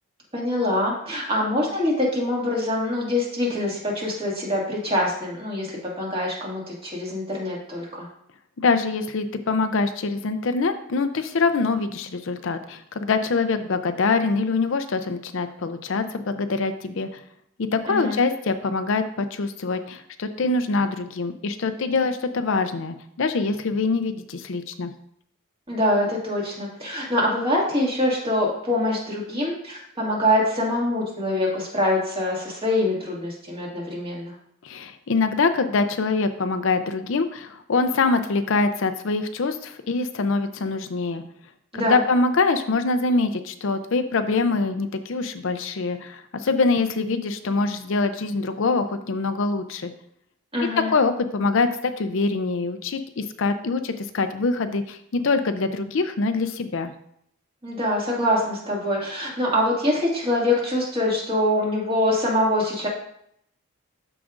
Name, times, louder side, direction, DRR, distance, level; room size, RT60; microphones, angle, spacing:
voice 1, 0.3-8.1 17.9-18.2 25.7-34.3 41.7-42.0 50.5-50.9 57.6-62.9, left 1 dB, 25° right, -3 dB, 2.0 m, -24 dB
voice 2, 8.6-17.2 17.7-24.9 34.6-41.2 41.9-49.9 50.8-56.9, left 3 dB, 60° left, 9 dB, 0.5 m, -24 dB
13.0 x 4.9 x 2.5 m, 0.72 s
head